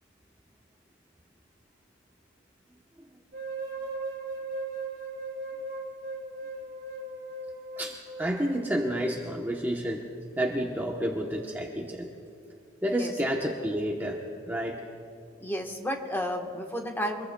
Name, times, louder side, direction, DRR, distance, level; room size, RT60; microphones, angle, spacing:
sound 1, 3.3-9.3, right 2 dB, 70° right, 2.6 m, -38 dB
voice 1, 7.8-10.1 10.4-12.1 12.8-14.2 14.5-14.8, equal, 10° right, -1 dB, 0.9 m, -30 dB
voice 2, 15.4-17.3, equal, 10° left, 1 dB, 1.2 m, -32 dB
25.5 x 21.5 x 2.3 m, 2.3 s
head